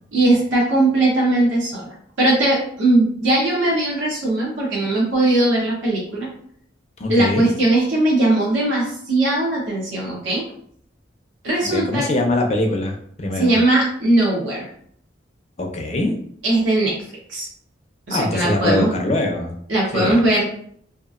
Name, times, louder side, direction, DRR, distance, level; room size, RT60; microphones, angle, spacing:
voice 1, 0.1-6.3 7.1-10.4 11.4-12.1 13.4-14.7 16.4-16.9 17.3-17.5 18.1-18.9 19.7-20.4, right 2 dB, 85° right, -4 dB, 0.9 m, -19 dB
voice 2, 7.0-7.5 11.7-13.5 15.6-16.1 18.1-19.5 19.9-20.2, left 1 dB, 35° left, 2 dB, 0.5 m, -22 dB
2.8 x 2.4 x 2.4 m, 0.63 s
head